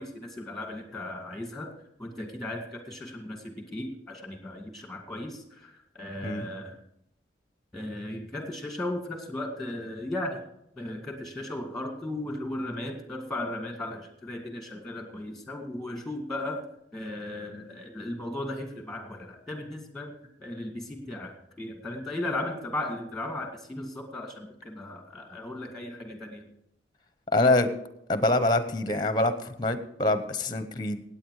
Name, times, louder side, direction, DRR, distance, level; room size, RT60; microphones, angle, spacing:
voice 1, 0.0-1.7 2.0-5.7 6.0-6.8 7.7-10.4 10.8-16.6 16.9-20.1 20.4-26.5, left 1 dB, ahead, 4 dB, 2.0 m, -36 dB
voice 2, 27.3-27.7 28.1-31.0, left 2 dB, 25° left, 10 dB, 0.8 m, -25 dB
17.0 x 8.7 x 4.8 m, 0.80 s
head